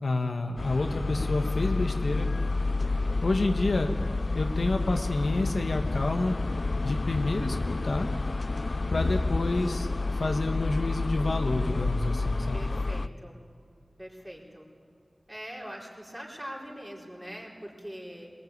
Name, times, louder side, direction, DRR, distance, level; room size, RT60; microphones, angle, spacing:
voice 1, 0.0-2.3 3.2-3.9 4.3-6.4 6.8-8.1 8.9-9.9 10.1-12.6, left 2 dB, 80° left, 4 dB, 1.5 m, -28 dB
sound 1, 0.6-13.1, left 3 dB, 60° left, 0.5 m, -29 dB
voice 2, 12.5-13.4 14.0-14.6 15.3-18.3, equal, 15° right, -3 dB, 4.7 m, -42 dB
22.0 x 20.0 x 9.6 m, 2.4 s
wide cardioid pair, 65°, 0 cm